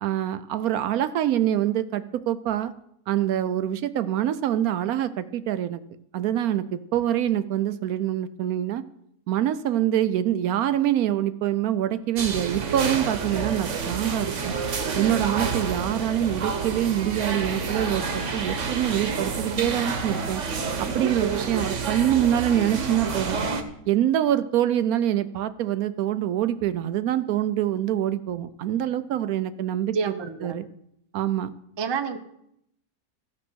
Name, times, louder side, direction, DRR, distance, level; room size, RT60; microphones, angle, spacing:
voice 1, 0.0-2.7 3.1-5.8 6.1-8.8 9.3-14.5 14.9-20.4 20.8-23.4 23.9-30.7 31.1-31.5, right 11 dB, 70° right, 14 dB, 1.0 m, -25 dB
sound 1, 12.2-23.6, right 5 dB, 55° right, 1.3 m, -29 dB
voice 2, 29.9-30.6 31.8-32.2, right 5 dB, 30° right, 8 dB, 0.5 m, -28 dB
15.0 x 5.9 x 6.2 m, 0.76 s
omnidirectional pair, 1.7 m